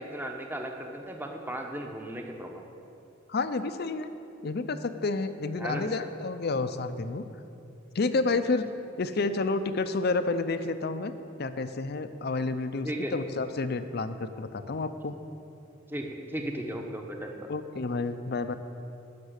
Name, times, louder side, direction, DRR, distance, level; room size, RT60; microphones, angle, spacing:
voice 1, 0.0-2.5 5.6-5.9 12.8-13.1 15.9-16.1 16.3-17.5, right 1 dB, 10° right, 2 dB, 0.9 m, -35 dB
voice 2, 3.3-4.1 4.4-7.2 7.9-8.7 9.0-11.1 11.4-15.2 17.5-18.5, left 3 dB, 55° left, 10 dB, 0.6 m, -30 dB
12.0 x 6.0 x 8.1 m, 2.7 s
head